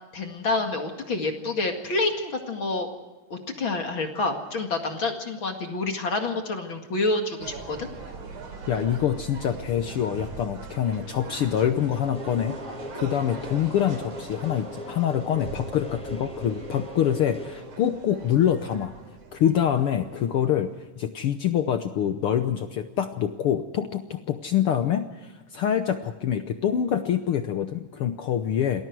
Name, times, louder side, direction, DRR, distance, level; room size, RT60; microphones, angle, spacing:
voice 1, 0.1-2.9 3.3-7.9, left 3 dB, 45° left, 4 dB, 2.5 m, -28 dB
sound 1, 7.4-20.8, right 4 dB, 60° right, 3.9 m, -41 dB
voice 2, 8.7-18.9 19.3-28.9, left 9 dB, 75° left, 9 dB, 1.3 m, -25 dB
sound 2, 11.9-17.6, equal, ahead, 3.7 m, -40 dB
28.0 x 20.0 x 4.7 m, 1.2 s
omnidirectional pair, 3.6 m